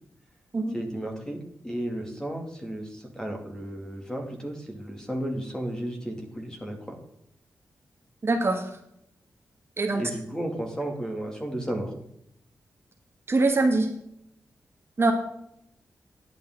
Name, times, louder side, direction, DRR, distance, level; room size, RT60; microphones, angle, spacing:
voice 1, 0.7-7.0 9.9-11.9, right 1 dB, 10° left, 1 dB, 2.6 m, -33 dB
voice 2, 8.2-8.8 9.8-10.0 13.3-13.9 15.0-15.1, right 3 dB, 40° right, 4 dB, 1.5 m, -23 dB
10.5 x 8.5 x 3.8 m, 0.75 s
cardioid pair, 75°, 6 cm